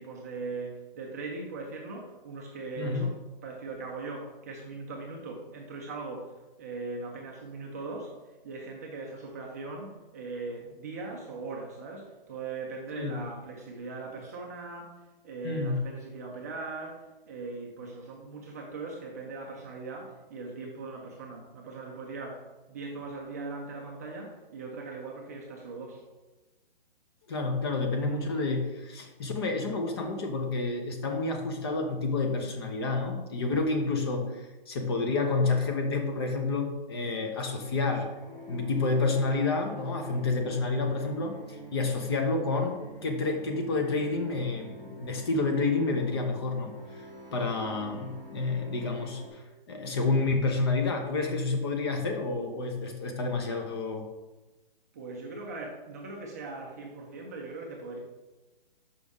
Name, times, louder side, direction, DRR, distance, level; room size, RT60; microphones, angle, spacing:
voice 1, 0.0-3.2 3.4-8.2 8.4-26.0 54.9-58.0, right 3 dB, 20° right, -1 dB, 0.5 m, -40 dB
voice 2, 2.8-3.1 13.0-13.1 15.4-15.8 27.3-38.1 38.5-47.1 47.3-54.0, left 3 dB, 25° left, 4 dB, 0.6 m, -29 dB
sound 1, 38.1-49.3, equal, 10° left, 1.7 m, -46 dB
6.7 x 5.3 x 3.5 m, 1.1 s
hypercardioid pair, 160°, 29 cm